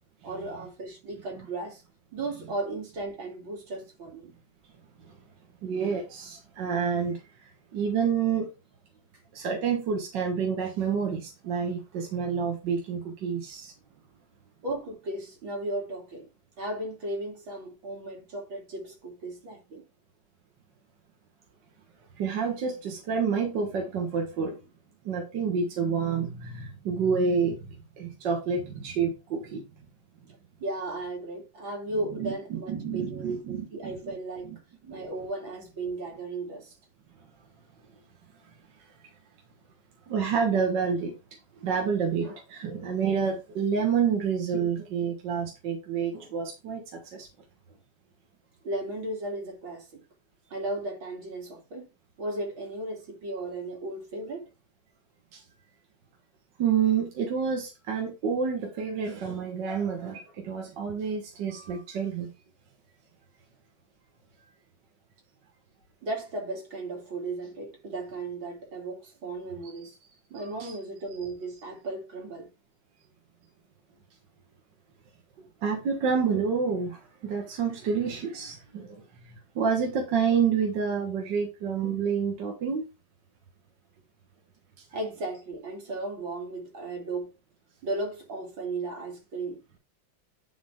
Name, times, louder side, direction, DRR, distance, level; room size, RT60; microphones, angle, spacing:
voice 1, 0.2-1.8 2.1-4.3 14.6-16.3 16.6-19.8 30.6-34.5 34.9-36.8 48.6-50.0 50.5-51.9 52.2-54.5 66.0-69.9 70.3-72.5 84.9-87.3 87.8-89.8, right 2 dB, 85° right, 3.6 m, -35 dB
voice 2, 5.6-8.5 9.3-13.7 22.1-24.6 25.1-27.7 28.0-29.6 32.2-34.1 34.5-34.6 34.8-35.1 40.1-41.1 41.6-47.3 55.3-55.4 56.6-62.3 70.4-70.8 75.6-82.8, right 6 dB, 65° right, 2.0 m, -29 dB
10.5 x 4.3 x 3.5 m
omnidirectional pair, 2.1 m